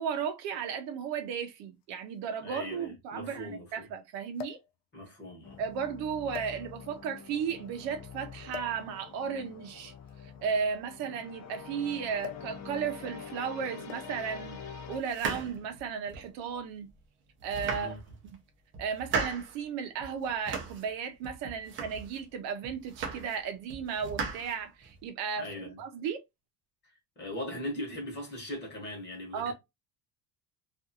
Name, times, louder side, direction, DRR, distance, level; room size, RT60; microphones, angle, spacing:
voice 1, 0.0-4.6 5.6-9.9 10.2-16.9 17.4-18.4 18.8-25.5 25.8-26.2 29.3-29.5, right 6 dB, 70° right, 0.7 m, -35 dB
sound 1, 0.6-0.7 1.8-1.9 2.2-2.3 4.3-4.8 5.6-5.8 6.3-7.0 8.5-8.8 10.0-11.6 12.2-12.6 12.8-13.1 13.9-14.3 15.2-15.5, left 8 dB, 90° left, 0.6 m, -43 dB
voice 2, 2.4-3.8 4.9-5.6 17.7-18.0 25.4-25.8 27.2-29.5, left 1 dB, 25° left, 1.0 m, -39 dB
sound 2, 5.4-15.0, left 6 dB, 40° left, 0.5 m, -46 dB
sound 3, 15.0-16.4 16.9-17.0 17.4-18.3 18.7-19.6 20.0-20.9 21.2-22.2 22.6-23.4 23.7-25.0, right 5 dB, 30° right, 0.5 m, -37 dB
2.5 x 2.5 x 2.6 m
cardioid pair, 170°, 45 cm